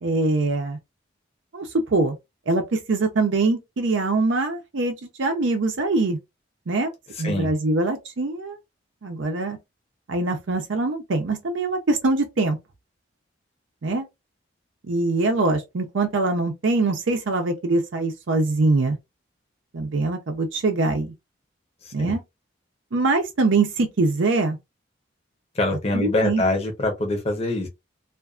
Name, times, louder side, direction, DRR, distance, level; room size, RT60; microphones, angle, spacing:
voice 1, 0.0-0.8 1.5-2.2 2.5-6.2 6.7-6.9 7.2-8.6 9.0-9.6 10.1-12.6 13.8-14.1 14.8-19.0 19.7-21.1 21.9-22.2 22.9-24.6 25.9-26.4, right 3 dB, 80° right, 0.6 m, -23 dB
voice 2, 21.8-22.2 25.5-27.7, left 2 dB, 30° left, 0.8 m, -24 dB
2.5 x 2.3 x 2.4 m
head